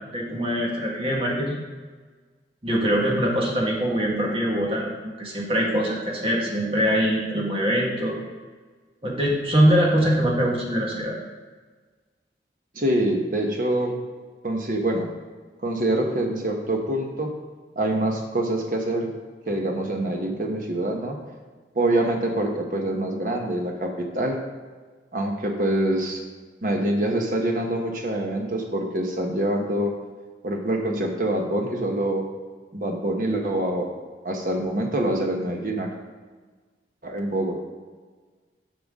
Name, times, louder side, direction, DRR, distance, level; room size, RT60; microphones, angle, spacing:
voice 1, 0.1-1.6 2.6-8.1 9.0-11.1, equal, 30° right, -2 dB, 1.6 m, -23 dB
voice 2, 12.7-14.0 14.4-15.1 15.6-17.3 17.8-19.1 19.5-21.2 21.7-24.4 25.1-26.2 26.6-29.9 30.4-32.2 32.7-33.9 34.2-35.9 37.0-37.6, right 1 dB, 50° right, 1 dB, 1.2 m, -25 dB
10.5 x 5.8 x 3.6 m, 1.4 s
head